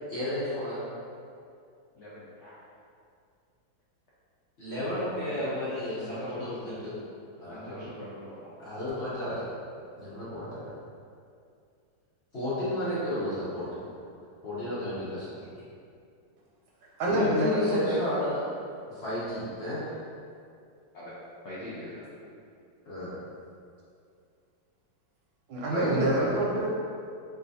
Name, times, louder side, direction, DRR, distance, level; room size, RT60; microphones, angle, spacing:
voice 1, 0.1-0.8 4.6-7.0 7.4-7.9 8.6-9.4 10.0-10.8 12.3-13.9 14.4-15.3 17.1-18.4 18.9-19.9 22.9-23.2 25.7-26.3, left 1 dB, 50° left, -11 dB, 0.8 m, -32 dB
voice 2, 1.9-2.5 4.9-5.5 6.0-6.9 7.5-8.6 20.9-21.2 21.4-22.0, left 1 dB, 80° left, -9 dB, 0.6 m, -43 dB
voice 3, 17.0-18.0 25.5-26.7, right 2 dB, 85° right, -3 dB, 1.5 m, -27 dB
4.9 x 2.4 x 2.6 m, 2.4 s
omnidirectional pair, 2.1 m